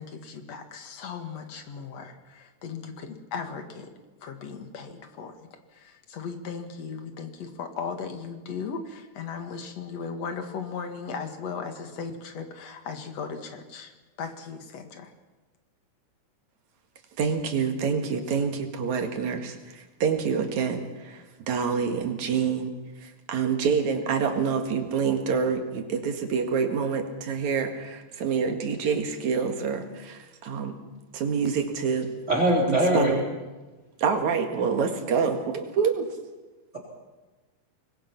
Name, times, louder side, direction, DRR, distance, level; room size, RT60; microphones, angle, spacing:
voice 1, 0.0-3.9 4.2-13.9 14.2-15.1, left 5 dB, 60° left, 2.8 m, -37 dB
voice 2, 17.2-22.7 23.0-30.8 31.1-32.1 32.7-33.2 34.0-36.1, right 6 dB, 70° right, 3.3 m, -27 dB
voice 3, 32.3-33.1, right 1 dB, 20° right, 4.1 m, -21 dB
25.5 x 21.0 x 6.0 m
omnidirectional pair, 3.4 m